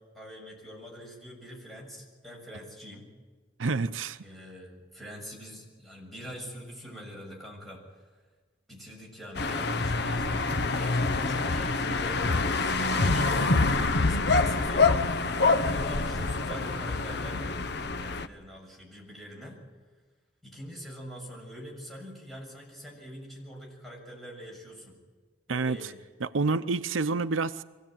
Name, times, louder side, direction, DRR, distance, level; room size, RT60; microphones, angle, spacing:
voice 1, 0.1-3.1 4.2-7.8 8.1-8.2 8.7-14.9 15.3-17.6 18.0-19.6 20.4-25.0 25.5-26.0 26.5-26.6, equal, ahead, -2 dB, 6.9 m, -44 dB
voice 2, 3.6-4.2 25.5-25.8 26.2-27.6, right 3 dB, 85° right, 12 dB, 0.7 m, -28 dB
sound 1, 9.4-18.3, left 3 dB, 60° left, 1.0 m, -26 dB
24.0 x 17.0 x 9.0 m, 1.4 s
head